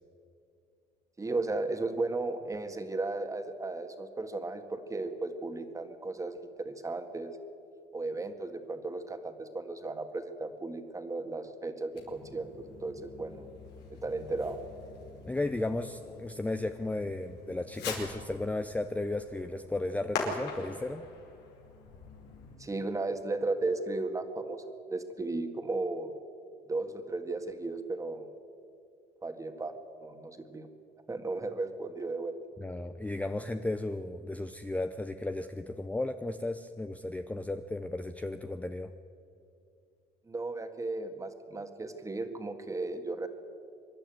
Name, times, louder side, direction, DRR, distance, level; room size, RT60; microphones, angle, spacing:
voice 1, 1.2-7.3 7.9-13.5 13.9-14.6 22.6-24.6 24.9-26.1 26.7-28.3 29.2-29.7 30.0-30.7 31.1-32.3 40.3-43.3, right 3 dB, 20° right, 7 dB, 1.9 m, -35 dB
Fireworks, 11.9-22.6, left 4 dB, 80° left, 4.9 m, -43 dB
voice 2, 15.3-21.0 32.6-38.9, left 2 dB, 10° left, 8 dB, 0.7 m, -34 dB
25.5 x 11.5 x 9.2 m, 2.5 s
cardioid pair, 110°, 17 cm